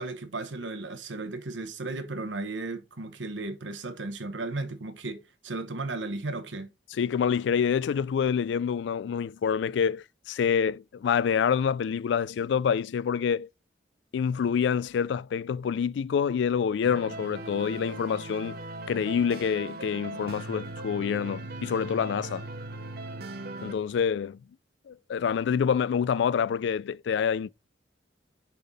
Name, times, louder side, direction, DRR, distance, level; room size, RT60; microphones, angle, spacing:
voice 1, 0.0-6.7, right 2 dB, 90° right, 1.1 m, -35 dB
voice 2, 7.0-13.5 14.1-18.6 18.9-22.4 23.6-24.4 24.9-27.5, left 7 dB, 70° left, 0.3 m, -27 dB
sound 1, 16.8-23.7, right 2 dB, 55° right, 0.7 m, -39 dB
6.9 x 3.8 x 4.1 m
head